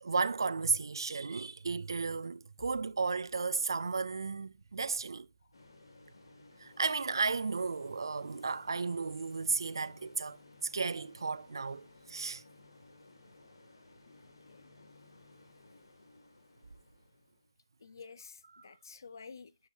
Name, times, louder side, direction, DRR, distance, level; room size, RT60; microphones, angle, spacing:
voice 1, 0.0-5.3 6.6-12.4, right 4 dB, 65° right, 0.4 m, -34 dB
Bowed string instrument, 2.6-9.0, equal, 35° left, 1.2 m, -64 dB
sound 1, 5.5-17.5, left 2 dB, 85° left, 2.2 m, -59 dB
voice 2, 17.8-19.7, left 5 dB, 50° left, 0.5 m, -51 dB
9.2 x 4.5 x 2.7 m
hypercardioid pair, 165°, 2 cm